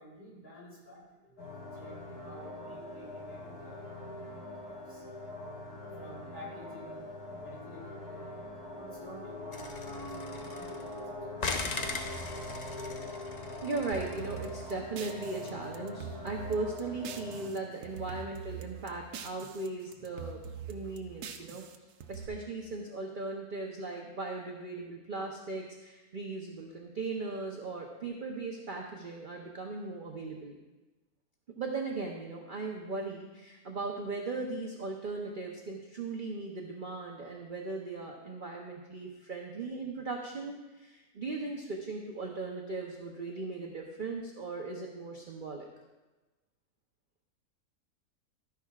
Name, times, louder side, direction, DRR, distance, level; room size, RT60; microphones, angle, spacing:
voice 1, 0.0-3.9 4.2-5.0 6.0-7.0 7.3-8.3 8.7-12.0, equal, 30° left, -7 dB, 3.6 m, -52 dB
sound 1, 1.4-17.5, left 1 dB, 80° left, 2.5 m, -43 dB
sound 2, 9.5-11.0 11.4-14.7, left 3 dB, 50° left, 0.5 m, -39 dB
voice 2, 12.7-13.1 13.6-21.6 22.1-30.6 31.6-45.7, right 3 dB, 45° right, 0 dB, 0.8 m, -38 dB
sound 3, 13.9-17.6 17.8-19.7 19.9-22.3, right 7 dB, 85° right, 1.2 m, -44 dB
12.5 x 10.5 x 2.4 m, 1.2 s
omnidirectional pair, 1.6 m